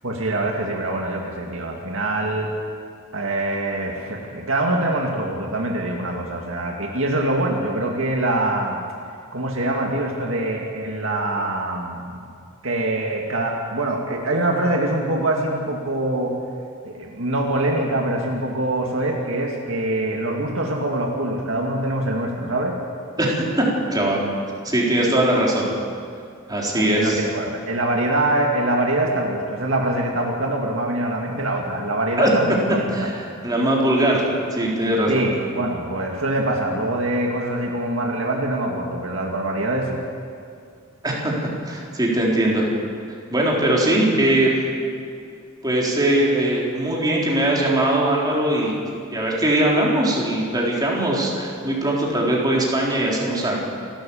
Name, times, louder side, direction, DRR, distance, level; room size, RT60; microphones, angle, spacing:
voice 1, 0.0-2.5 3.1-8.8 9.3-12.2 12.6-16.3 16.8-22.7 26.7-33.1 35.1-40.0, right 1 dB, 65° right, 0 dB, 2.2 m, -24 dB
voice 2, 23.2-23.6 23.9-24.2 24.6-25.7 26.5-27.2 32.2-32.3 32.9-35.3 41.0-41.3 41.6-42.7 43.3-44.5 45.6-48.8 49.1-53.6, right 1 dB, 20° right, -4 dB, 4.0 m, -20 dB
28.0 x 13.0 x 7.2 m, 2.3 s
head